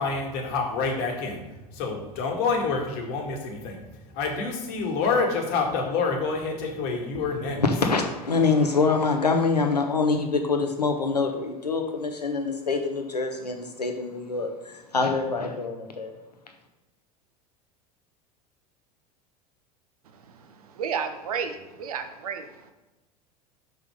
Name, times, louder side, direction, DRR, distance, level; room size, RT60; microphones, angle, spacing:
voice 1, 0.0-1.4 1.7-3.8 4.1-7.6, left 4 dB, 50° left, 2 dB, 1.9 m, -27 dB
voice 2, 7.6-16.1, left 4 dB, 85° left, 4 dB, 1.1 m, -25 dB
voice 3, 20.7-22.5, right 6 dB, 65° right, 7 dB, 0.9 m, -31 dB
6.1 x 5.3 x 5.0 m, 1.1 s
figure-of-eight pair, 80°, 20 cm